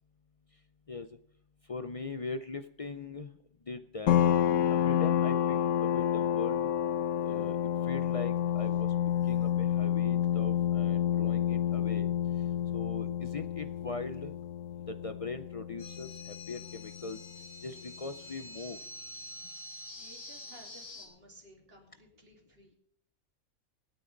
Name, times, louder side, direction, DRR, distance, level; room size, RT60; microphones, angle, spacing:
voice 1, 0.9-1.2 1.7-3.3 3.7-4.3 4.7-6.7 7.2-7.6 7.8-8.9 9.3-12.1 12.7-14.3 14.9-17.2 17.6-18.8, left 3 dB, 60° left, 9 dB, 0.3 m, -40 dB
sound 1, 4.1-17.3, left 10 dB, 75° left, 1.1 m, -29 dB
sound 2, 15.8-21.1, left 1 dB, 35° left, 3.0 m, -47 dB
voice 2, 19.4-22.8, right 1 dB, 40° right, 0 dB, 3.4 m, -57 dB
25.5 x 9.2 x 3.9 m, 0.69 s
omnidirectional pair, 1.5 m